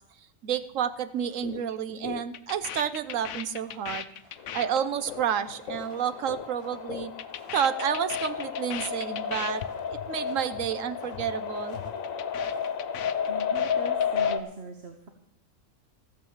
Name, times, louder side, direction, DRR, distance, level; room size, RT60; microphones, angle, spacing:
voice 1, 0.4-4.1 4.5-7.1 7.5-9.6 10.1-11.8, right 8 dB, 80° right, 13 dB, 1.2 m, -30 dB
sound 1, 0.9-1.8 2.1-2.2 2.6-2.7 3.5-14.2, left 1 dB, 25° left, 2.0 m, -54 dB
sound 2, 1.4-1.6 1.9-6.5 6.7-9.7 9.9-10.1 10.4-10.7 11.0-11.3 11.6-14.4, left 10 dB, 70° left, 1.0 m, -38 dB
sound 3, 4.4-14.4, left 7 dB, 85° left, 1.4 m, -32 dB
voice 2, 13.3-15.1, right 2 dB, 55° right, 5 dB, 1.4 m, -40 dB
14.0 x 9.2 x 7.3 m, 0.79 s
omnidirectional pair, 1.3 m